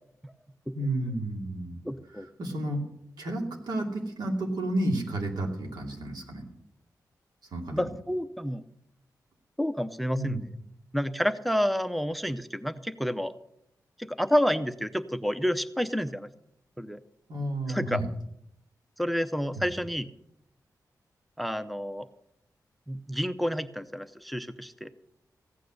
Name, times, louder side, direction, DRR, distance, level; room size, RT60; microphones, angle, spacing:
voice 1, 0.7-1.8 2.1-2.8 3.2-6.4 7.5-7.9 10.1-10.4 17.3-18.1 19.5-19.7, right 1 dB, 90° right, 1 dB, 2.8 m, -31 dB
voice 2, 1.8-2.3 7.7-8.6 9.6-10.4 10.9-13.3 14.0-16.3 16.8-17.0 17.7-18.0 19.0-20.1 21.4-22.1 22.9-24.9, equal, ahead, 12 dB, 0.6 m, -29 dB
15.5 x 9.3 x 6.4 m, 0.77 s
wide cardioid pair, 120°, 7 cm